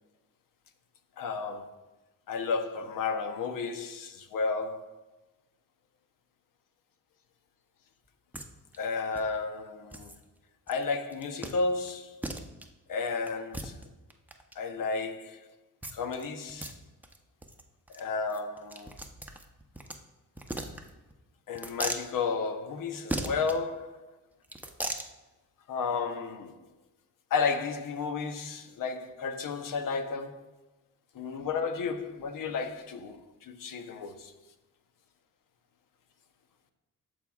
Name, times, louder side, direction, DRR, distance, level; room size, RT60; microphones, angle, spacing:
voice 1, 1.2-1.7 2.3-5.0 8.8-10.1 10.7-12.2 12.9-13.7 14.6-15.4 15.9-16.7 17.9-18.9 21.5-24.0 25.7-26.6 27.3-30.4 31.1-34.3, left 4 dB, 70° left, 0.8 m, -32 dB
sound 1, 8.3-8.5 8.7-8.8 9.2-9.3 9.9-10.2 10.7-10.8 11.1-11.5 11.9-12.0 12.2-12.7 13.3-14.5 15.8-16.2 16.5-16.7 17.0-17.2 17.4-17.6 17.9-18.0 18.3-20.0 20.4-21.1 21.5-22.1 23.1-23.6 24.4-25.1, right 1 dB, 5° right, 0.7 m, -37 dB
13.0 x 4.7 x 2.3 m
cardioid pair, 70°, 34 cm